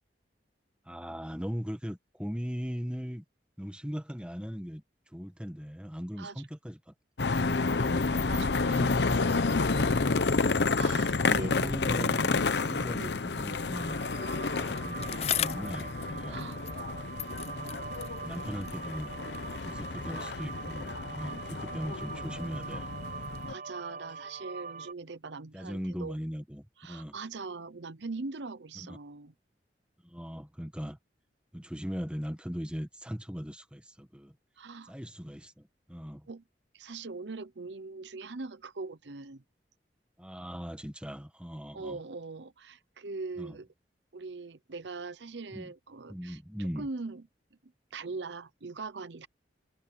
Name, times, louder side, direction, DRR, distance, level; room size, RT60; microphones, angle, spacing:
voice 1, 0.8-3.2 3.6-6.9 7.4-8.2 11.2-14.1 14.5-16.4 17.3-17.8 18.2-19.1 19.6-22.9 25.5-27.1 28.7-29.0 30.0-31.0 31.5-34.4 34.8-36.3 40.2-42.0 43.4-43.6 45.5-45.7 46.1-46.9, equal, 5° right, 1.7 m, -39 dB
sound 1, 7.2-23.5, left 4 dB, 75° left, 0.8 m, -30 dB
voice 2, 8.3-9.0 10.3-11.6 13.0-13.2 16.3-16.6 23.5-26.2 26.8-29.3 34.6-34.9 36.3-36.4 36.7-39.4 41.7-43.7 44.1-46.4 46.8-47.2 47.9-49.3, right 3 dB, 85° right, 0.8 m, -41 dB
sound 2, 13.7-24.9, right 4 dB, 50° right, 4.8 m, -43 dB
Bicycle, 14.5-16.9 17.2-19.6 20.3-20.4, left 11 dB, 35° left, 0.4 m, -38 dB
head